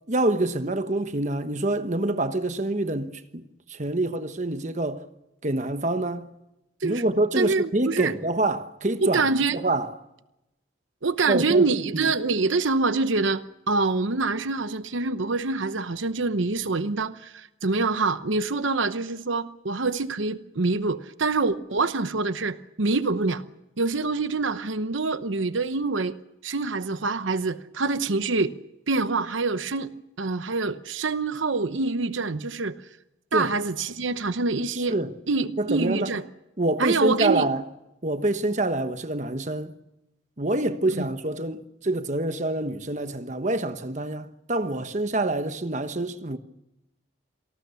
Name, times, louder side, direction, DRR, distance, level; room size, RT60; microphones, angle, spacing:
voice 1, 0.1-3.4 3.7-5.0 5.4-6.3 6.8-9.2 9.5-9.9 11.3-12.1 33.3-33.5 34.9-35.1 35.6-36.1 36.6-37.6 38.0-39.7 40.4-46.4, right 2 dB, 35° right, 1.2 m, -26 dB
voice 2, 7.4-8.1 9.0-9.6 11.0-23.4 23.8-26.2 26.4-28.5 28.9-29.9 30.2-32.8 33.3-35.0 35.3-36.2 36.8-37.5 40.9-41.1, right 3 dB, 75° right, 0.9 m, -25 dB
27.5 x 19.0 x 7.0 m
head